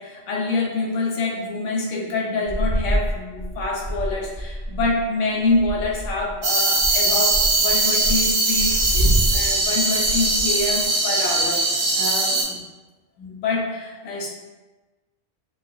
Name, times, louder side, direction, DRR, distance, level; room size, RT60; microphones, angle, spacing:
voice 1, 0.0-12.5 13.2-14.3, left 3 dB, 90° left, -1 dB, 0.9 m, -26 dB
sound 1, 2.5-5.0 5.5-6.4 6.8-10.9, right 1 dB, 35° right, 0.7 m, -26 dB
sound 2, 6.4-12.4, right 2 dB, 85° right, 0.9 m, -21 dB
2.4 x 2.1 x 2.5 m, 1.2 s
omnidirectional pair, 1.2 m